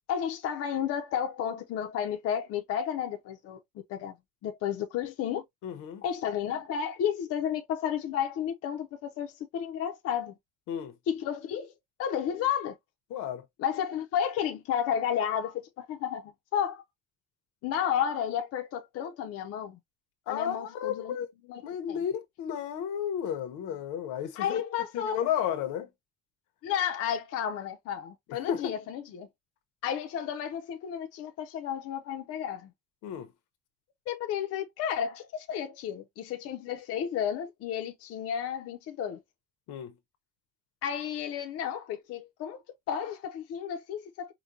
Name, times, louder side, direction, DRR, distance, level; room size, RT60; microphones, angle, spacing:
voice 1, 0.1-3.6 3.9-4.1 4.4-5.4 6.0-10.3 11.1-11.7 12.0-12.8 13.6-16.8 17.6-19.8 20.3-21.2 21.5-21.6 21.9-22.0 24.4-25.2 26.6-29.3 29.8-32.7 34.1-39.2 40.8-42.6 42.9-44.3, left 9 dB, 50° left, 0.6 m, -32 dB
voice 2, 5.6-6.0 10.7-10.9 13.1-13.4 20.3-21.3 21.6-24.6 24.9-25.9 28.3-28.7 33.0-33.3 39.7-39.9, left 9 dB, 75° left, 0.9 m, -33 dB
5.0 x 2.2 x 2.6 m
cardioid pair, 175°, 31 cm